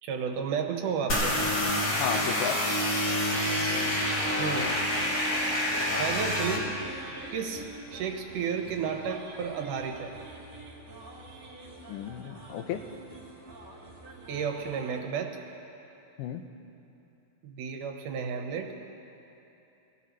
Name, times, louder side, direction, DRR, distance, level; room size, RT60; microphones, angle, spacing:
voice 1, 0.0-1.4 4.4-4.7 5.9-6.7 7.3-10.1 14.3-15.4 17.4-18.7, right 6 dB, 75° right, 3 dB, 2.5 m, -32 dB
sound 1, 1.1-6.6, left 1 dB, 45° left, 2.7 m, -27 dB
voice 2, 1.9-2.6 11.9-12.8 16.2-16.4, left 10 dB, 85° left, 8 dB, 2.3 m, -33 dB
sound 2, 3.8-15.0, right 3 dB, 30° right, 2.5 m, -46 dB
23.5 x 17.5 x 3.1 m, 2.9 s
omnidirectional pair, 3.8 m